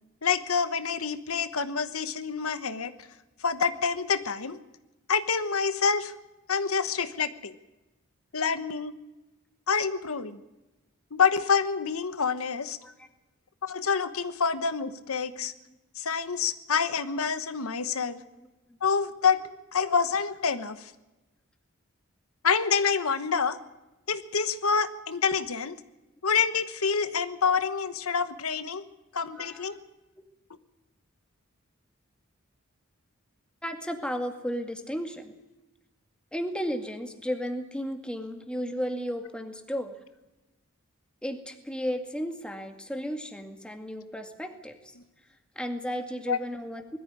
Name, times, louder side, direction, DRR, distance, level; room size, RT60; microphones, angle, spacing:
voice 1, 0.2-2.9 3.4-4.6 5.1-6.1 6.5-7.5 8.3-8.9 9.7-10.4 11.1-12.8 13.6-15.5 16.0-18.2 18.8-19.4 19.7-20.9 22.4-23.6 24.1-25.8 26.2-28.8 29.1-29.8 46.3-46.4, left 5 dB, 85° left, 12 dB, 1.1 m, -27 dB
voice 2, 29.4-29.7 33.6-35.3 36.3-40.0 41.2-44.8 45.6-47.0, equal, 5° left, 5 dB, 2.1 m, -34 dB
20.5 x 14.0 x 9.7 m, 1.0 s
head